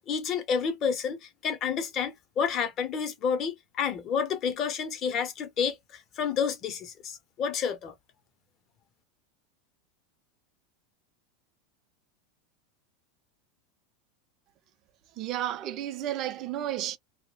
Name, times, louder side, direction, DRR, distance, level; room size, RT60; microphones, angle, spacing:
voice 1, 0.1-7.9, left 6 dB, 35° left, 0.7 m, -30 dB
voice 2, 15.1-17.0, right 12 dB, 40° right, 0.5 m, -32 dB
2.2 x 2.1 x 3.1 m
supercardioid pair, 140°, 0 cm